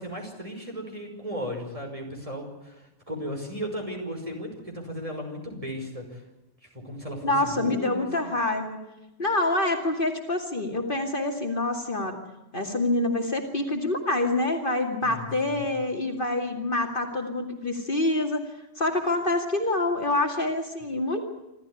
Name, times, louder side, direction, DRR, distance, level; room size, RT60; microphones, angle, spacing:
voice 1, 0.0-6.2 6.7-8.3 15.0-15.7, equal, 30° right, 2 dB, 5.8 m, -36 dB
voice 2, 7.2-8.8 9.2-12.2 12.5-18.4 18.8-21.2, left 2 dB, 45° left, 3 dB, 2.6 m, -26 dB
27.0 x 13.5 x 9.9 m, 0.99 s
omnidirectional pair, 1.2 m